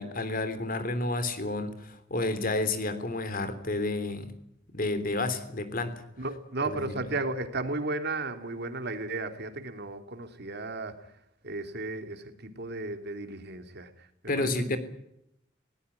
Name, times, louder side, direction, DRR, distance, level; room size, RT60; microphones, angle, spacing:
voice 1, 0.0-4.3 4.7-5.9 6.6-7.0 14.3-14.8, left 2 dB, 45° left, 11 dB, 3.4 m, -30 dB
voice 2, 6.2-10.9 11.4-13.9 14.4-14.8, right 2 dB, 55° right, 7 dB, 3.0 m, -34 dB
20.5 x 18.5 x 9.7 m, 0.80 s
head